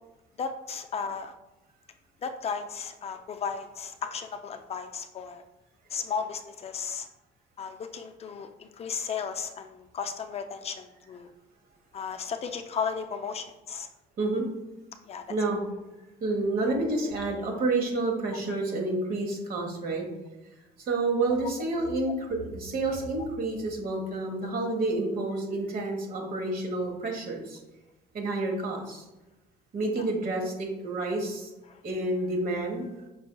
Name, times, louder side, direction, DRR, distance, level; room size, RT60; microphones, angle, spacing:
voice 1, 0.4-1.3 2.2-5.4 5.9-7.1 7.6-11.3 11.9-13.9 15.1-15.3 30.0-30.1 31.7-31.8, left 6 dB, 40° left, 7 dB, 0.4 m, -35 dB
voice 2, 15.3-15.6 16.2-20.1 20.8-27.6 28.1-29.0 29.7-31.5 31.8-32.9, right 2 dB, 60° right, 2 dB, 1.2 m, -29 dB
5.4 x 4.2 x 2.2 m, 1.0 s
cardioid pair, 110°, 17 cm